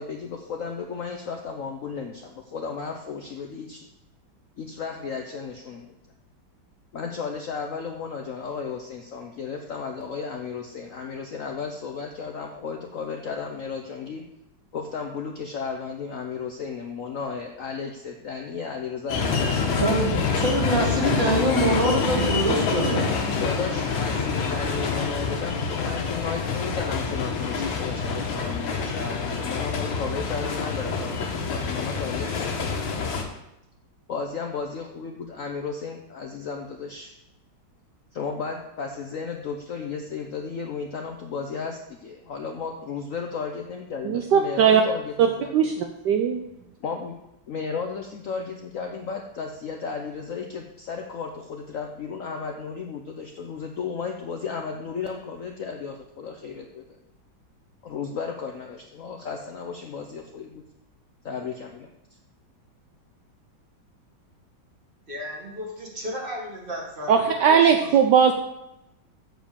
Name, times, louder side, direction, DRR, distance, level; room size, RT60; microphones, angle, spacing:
voice 1, 0.0-3.9 4.6-5.9 6.9-14.2 14.7-19.8 23.4-32.8 34.1-37.1 38.1-45.7 46.8-47.1 47.5-56.8 57.8-60.6 61.2-61.9, left 5 dB, 60° left, 3 dB, 0.8 m, -34 dB
sound 1, 19.1-33.2, left 5 dB, 90° left, 1.9 m, -27 dB
voice 2, 19.8-23.1, right 1 dB, 45° right, -1 dB, 2.2 m, -24 dB
voice 3, 44.0-44.8 45.2-45.7 46.1-46.4 67.1-68.3, right 7 dB, 70° right, 5 dB, 1.1 m, -19 dB
voice 4, 65.1-67.9, left 1 dB, 25° right, -2 dB, 2.0 m, -35 dB
7.6 x 5.1 x 6.9 m, 0.86 s
omnidirectional pair, 2.2 m